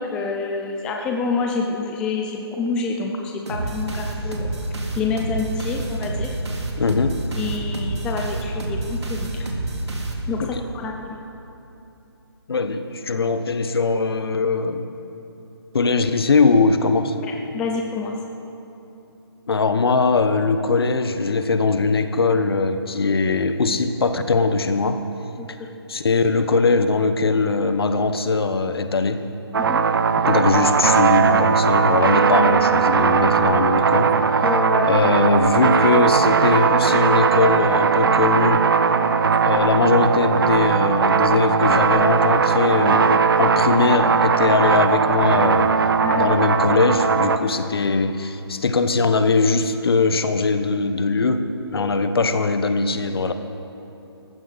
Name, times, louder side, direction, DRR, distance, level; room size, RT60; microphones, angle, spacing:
voice 1, 0.0-4.5 5.0-6.4 7.4-9.5 10.3-11.2 17.2-18.2 25.4-25.5 29.7-29.9 34.4-34.9 46.0-46.4 51.7-51.9, left 4 dB, 5° left, 1 dB, 0.4 m, -27 dB
sound 1, 3.5-10.6, right 2 dB, 90° right, 2.9 m, -28 dB
voice 2, 6.8-7.2 10.5-10.6 12.5-14.9 15.7-17.2 19.5-25.0 25.5-25.6 25.9-29.3 30.3-34.5 34.9-38.7 39.4-45.8 46.2-53.3, left 4 dB, 65° left, 9 dB, 1.2 m, -20 dB
sound 2, 29.5-47.4, right 6 dB, 55° right, 0.8 m, -18 dB
20.5 x 14.5 x 4.2 m, 2.9 s
hypercardioid pair, 160°, 14 cm